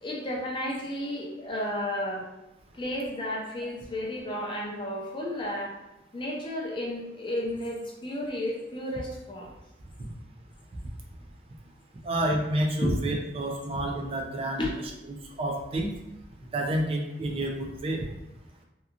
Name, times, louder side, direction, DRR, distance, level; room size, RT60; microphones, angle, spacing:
voice 1, 0.0-2.3 2.7-5.8 6.1-9.5 12.8-13.0 14.6-14.7, left 1 dB, 25° left, -2 dB, 0.5 m, -32 dB
voice 2, 12.0-14.6 15.4-15.9 16.5-18.1, right 1 dB, 35° right, 2 dB, 0.4 m, -29 dB
2.8 x 2.3 x 2.4 m, 0.91 s
head